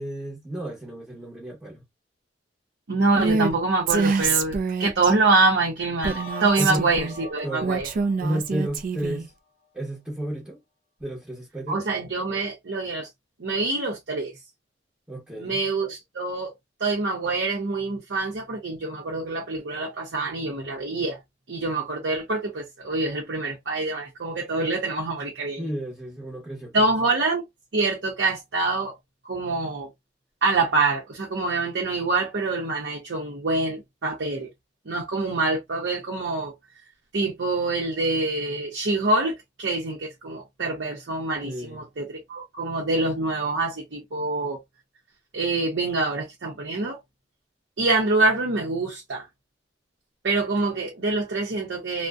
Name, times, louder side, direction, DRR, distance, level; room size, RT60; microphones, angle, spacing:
voice 1, 0.0-1.8 3.2-3.5 6.6-6.9 7.4-7.8 8.2-9.3 9.7-10.6 11.0-11.8 15.1-15.6 25.6-26.9 41.4-41.8, right 1 dB, 5° right, 0.8 m, -32 dB
voice 2, 2.9-7.9 11.7-13.1 13.4-14.3 15.4-16.5 16.8-21.2 21.5-25.7 26.7-27.4 27.7-29.0 29.2-29.9 30.4-34.5 34.9-36.5 37.1-44.6 45.3-47.0 47.8-49.3 50.2-52.1, right 3 dB, 75° right, 0.7 m, -25 dB
Female speech woman speaking, 3.2-3.5 3.9-5.1 6.0-7.1 7.6-9.3, right 4 dB, 50° right, 0.4 m, -25 dB
sound 1, 6.0-9.1, left 2 dB, 50° left, 0.5 m, -41 dB
2.6 x 2.1 x 2.3 m
head